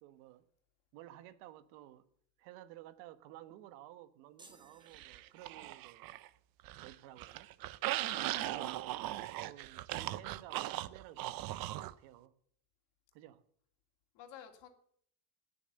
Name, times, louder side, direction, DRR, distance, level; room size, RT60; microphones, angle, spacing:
voice 1, 0.0-0.4 0.9-2.1 2.4-6.1 6.8-7.5 8.2-8.8 9.4-12.3 13.1-13.4, right 13 dB, 70° right, 1.5 m, -54 dB
sound 1, 4.4-5.9, right 2 dB, 10° right, 1.5 m, -62 dB
sound 2, 4.9-6.3 6.6-11.9, right 15 dB, 45° right, 0.7 m, -39 dB
voice 2, 8.0-8.8 14.1-14.7, left 9 dB, 55° left, 2.7 m, -52 dB
17.0 x 7.2 x 7.9 m
supercardioid pair, 115°, 49 cm